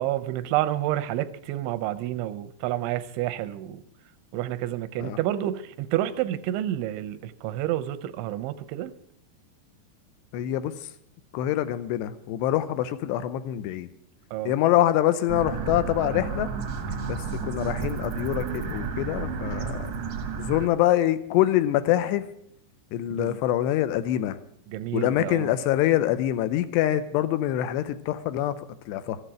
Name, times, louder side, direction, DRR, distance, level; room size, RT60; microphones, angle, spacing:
voice 1, 0.0-3.8 4.3-8.9 14.3-14.5 23.1-23.4 24.7-25.5, right 13 dB, 90° right, 13 dB, 3.1 m, -29 dB
voice 2, 10.3-10.7 11.3-13.9 14.5-16.5 17.1-19.9 20.4-22.2 22.9-24.4 24.9-28.5 28.9-29.2, left 13 dB, 80° left, 12 dB, 2.7 m, -25 dB
sound 1, 15.3-20.7, right 5 dB, 75° right, 1.4 m, -32 dB
13.5 x 8.2 x 8.8 m, 0.72 s
omnidirectional pair, 5.2 m